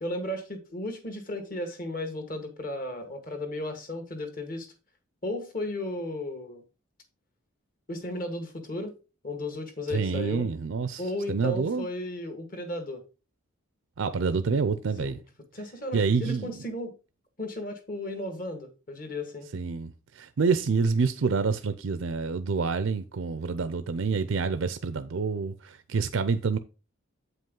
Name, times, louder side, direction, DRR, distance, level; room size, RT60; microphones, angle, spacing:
voice 1, 0.0-4.7 5.2-6.6 7.9-8.9 9.2-10.5 11.0-13.0 15.0-15.1 15.5-16.9 17.4-19.5, left 1 dB, 40° left, 1.5 m, -34 dB
voice 2, 9.9-11.0 11.3-11.9 14.0-15.2 15.9-16.5 19.5-26.6, right 5 dB, 70° right, 0.5 m, -27 dB
8.0 x 5.3 x 3.7 m
head